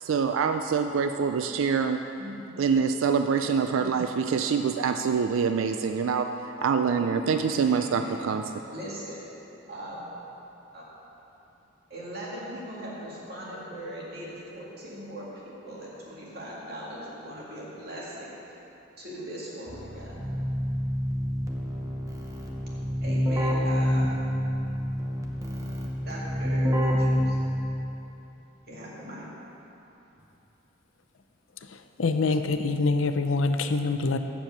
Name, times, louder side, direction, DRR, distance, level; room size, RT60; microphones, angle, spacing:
voice 1, 0.0-2.0 2.6-6.3 6.6-8.4, right 6 dB, 80° right, 7 dB, 0.4 m, -25 dB
voice 2, 6.9-8.3 8.7-9.4 9.7-10.1 10.7-11.0 11.9-18.4 19.0-20.3 23.0-24.1 24.6-24.7 26.1-27.4 28.3-29.3, equal, 50° right, -6 dB, 2.3 m, -40 dB
Keyboard (musical), 19.7-28.0, equal, 15° right, 0.8 m, -28 dB
voice 3, 32.0-34.2, left 3 dB, 80° left, 8 dB, 0.5 m, -25 dB
7.4 x 6.9 x 7.8 m, 3.0 s
head